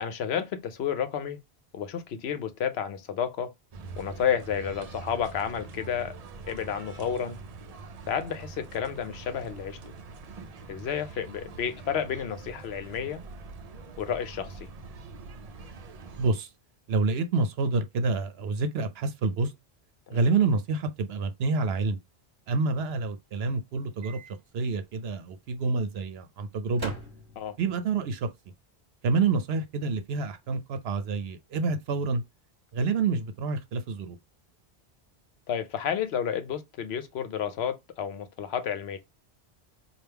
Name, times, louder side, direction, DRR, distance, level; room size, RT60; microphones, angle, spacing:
voice 1, 0.0-1.4 1.7-3.5 4.0-6.1 6.4-7.4 8.1-9.8 10.7-13.2 14.0-14.7 20.1-20.2 27.4-27.5 35.5-39.0, left 8 dB, 75° left, 0.9 m, -31 dB
sound 1, 3.7-16.3, right 4 dB, 50° right, 0.5 m, -44 dB
voice 2, 16.2-16.5 16.9-19.5 20.1-22.0 22.5-24.2 24.5-26.9 27.6-28.3 29.0-32.2 32.7-34.2, right 4 dB, 70° right, 0.8 m, -27 dB
Microwave oven, 24.0-24.3 24.7-24.8 26.7-27.7, equal, 20° right, 1.4 m, -40 dB
3.4 x 2.4 x 4.4 m
omnidirectional pair, 1.1 m